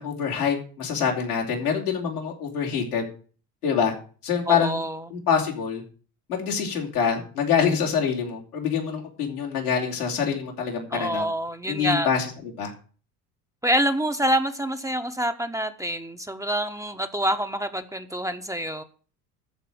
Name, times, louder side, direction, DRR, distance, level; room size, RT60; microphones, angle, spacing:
voice 1, 0.0-3.0 3.6-3.9 4.2-4.8 5.1-5.8 6.3-11.3 11.7-12.7, left 7 dB, 85° left, 3.3 m, -25 dB
voice 2, 4.5-5.0 10.9-12.1 13.6-18.8, equal, 5° right, 1.2 m, -26 dB
13.5 x 4.7 x 9.0 m
hypercardioid pair, 65°, 44 cm